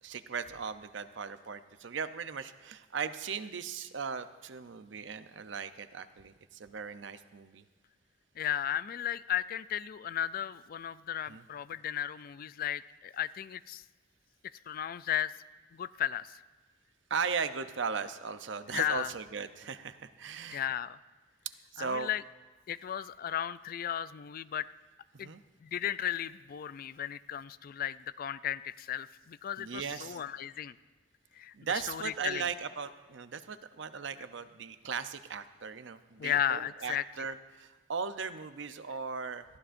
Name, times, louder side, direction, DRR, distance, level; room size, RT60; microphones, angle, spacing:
voice 1, 0.0-7.6 11.3-11.5 17.1-20.6 21.7-22.1 25.1-25.4 29.6-30.2 31.5-39.4, right 5 dB, 70° right, 11 dB, 0.6 m, -38 dB
voice 2, 8.4-13.8 14.7-15.3 15.7-16.3 18.7-19.1 20.5-21.0 21.8-22.2 22.7-24.7 25.2-25.3 25.6-30.7 31.4-31.5 31.9-32.4 36.2-37.0, left 10 dB, 50° left, 16 dB, 0.3 m, -35 dB
21.0 x 15.0 x 2.6 m, 1.3 s
head